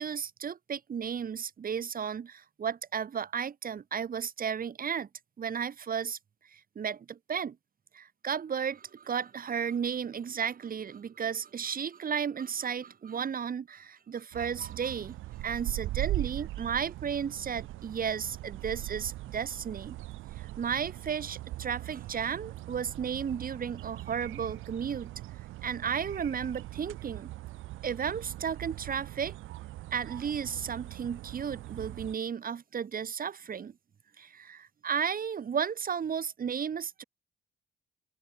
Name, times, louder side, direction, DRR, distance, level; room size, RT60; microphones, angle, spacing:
voice 1, 0.0-5.1 5.4-6.2 6.5-7.6 7.9-20.0 20.4-25.1 25.6-27.3 27.8-29.3 29.9-33.7 34.2-37.0, right 7 dB, 45° right, 2.1 m, -34 dB
sound 1, 14.3-32.2, right 16 dB, 85° right, 1.0 m, -40 dB
open air
cardioid pair, 90°, 20 cm